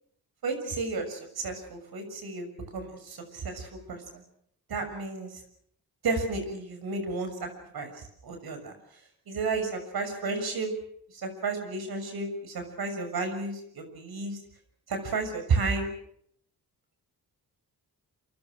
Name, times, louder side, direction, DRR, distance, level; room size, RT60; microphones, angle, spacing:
voice 1, 0.4-4.2 4.7-5.4 6.0-8.7 9.3-10.7 11.1-14.4 14.9-15.9, right 3 dB, 75° right, 7 dB, 6.7 m, -32 dB
27.5 x 25.5 x 6.4 m, 0.68 s
cardioid pair, 85°, 37 cm